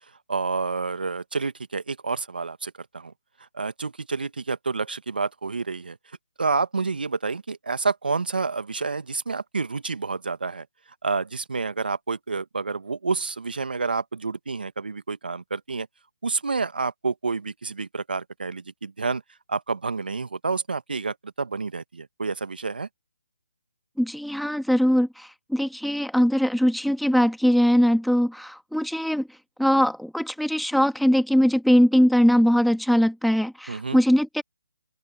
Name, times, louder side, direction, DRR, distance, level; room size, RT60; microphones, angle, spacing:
voice 1, 0.3-3.1 3.5-6.0 6.4-10.7 11.0-15.9 16.2-19.2 19.5-22.9 33.7-34.0, right 4 dB, 75° right, 1.8 m, -29 dB
voice 2, 24.0-29.3 29.6-34.4, equal, ahead, 2.2 m, -21 dB
open air
figure-of-eight pair, 150°, 5 cm